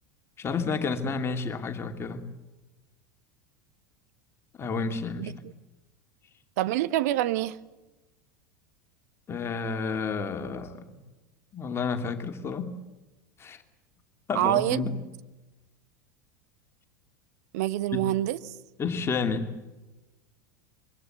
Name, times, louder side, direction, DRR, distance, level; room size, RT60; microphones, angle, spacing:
voice 1, 0.4-2.2 4.6-5.3 9.3-11.0 11.5-12.7 13.4-13.6 14.3-15.0 18.8-19.5, left 4 dB, 25° left, 2.7 m, -30 dB
voice 2, 6.6-7.6 14.3-14.8 17.5-18.5, right 14 dB, 60° right, 1.2 m, -26 dB
25.0 x 23.0 x 8.1 m
figure-of-eight pair, 85°, 10 cm